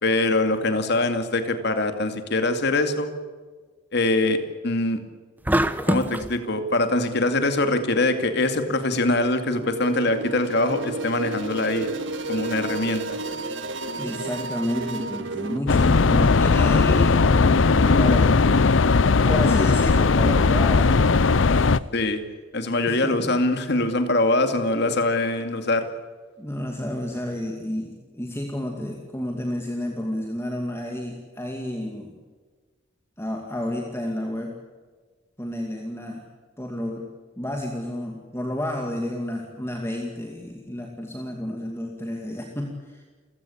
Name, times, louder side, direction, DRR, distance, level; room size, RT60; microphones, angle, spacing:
voice 1, 0.0-3.1 3.9-5.0 5.8-11.9 12.3-13.2 21.9-22.2 22.5-25.9, left 2 dB, 60° left, 8 dB, 2.4 m, -23 dB
sound 1, 5.5-6.3, right 1 dB, 10° right, 0.9 m, -23 dB
sound 2, 9.6-15.6, right 2 dB, 70° right, 1.8 m, -31 dB
voice 2, 14.0-18.4 19.3-21.8 22.9-23.3 26.4-32.1 33.2-34.5 35.4-36.2 36.6-37.0 37.4-43.0, left 1 dB, 15° left, 1 dB, 2.4 m, -31 dB
sound 3, 15.7-21.8, left 4 dB, 75° left, 0.7 m, -18 dB
29.5 x 16.0 x 8.6 m, 1.4 s
head